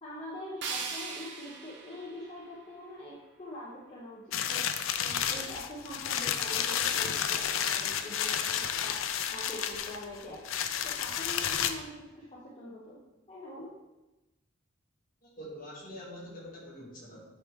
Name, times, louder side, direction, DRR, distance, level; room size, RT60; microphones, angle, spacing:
voice 1, 0.0-10.4 10.8-13.0 13.3-13.7, left 1 dB, 30° left, -7 dB, 1.0 m, -44 dB
sound 1, 0.6-3.6, right 5 dB, 55° right, 0.8 m, -41 dB
sound 2, 4.3-11.7, left 9 dB, 75° left, 0.4 m, -31 dB
voice 2, 15.2-17.2, equal, 45° left, -5 dB, 1.9 m, -45 dB
8.3 x 3.2 x 3.6 m, 1.0 s
head